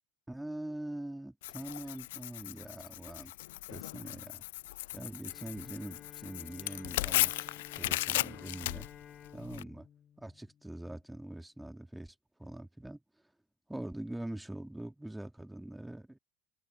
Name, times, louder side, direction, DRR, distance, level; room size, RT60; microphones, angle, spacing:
voice 1, 0.3-3.3 3.7-4.4 4.9-8.9 9.3-9.9 10.2-12.1 12.4-13.0 13.7-16.2, right 1 dB, 5° right, 3.4 m, -43 dB
Tearing, 1.4-9.6, left 17 dB, 60° left, 0.5 m, -36 dB
Bowed string instrument, 5.3-11.2, left 9 dB, 30° left, 2.3 m, -54 dB
figure-of-eight pair, 75°, 0 cm